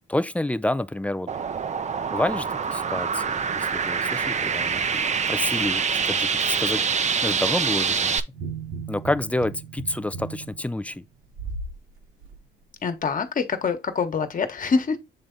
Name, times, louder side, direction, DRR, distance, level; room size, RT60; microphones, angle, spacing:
voice 1, 0.1-1.3 2.1-4.8 5.3-6.8 7.2-8.2 8.9-11.0, left 1 dB, 5° left, 0.4 m, -28 dB
sound 1, 1.3-8.2, right 6 dB, 35° right, 0.6 m, -25 dB
sound 2, 8.3-11.8 12.2-12.4, right 4 dB, 85° right, 1.9 m, -36 dB
voice 2, 12.8-15.0, left 5 dB, 45° left, 1.3 m, -25 dB
7.6 x 3.4 x 3.9 m
cardioid pair, 90°, 20 cm